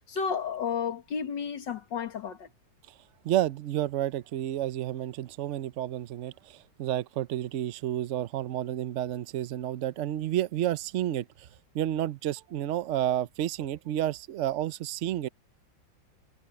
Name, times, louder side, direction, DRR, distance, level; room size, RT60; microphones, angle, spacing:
voice 1, 0.1-2.5, left 6 dB, 70° left, 2.5 m, -32 dB
voice 2, 3.2-11.5 11.7-15.3, right 12 dB, 65° right, 0.7 m, -30 dB
omnidirectional pair, 2.0 m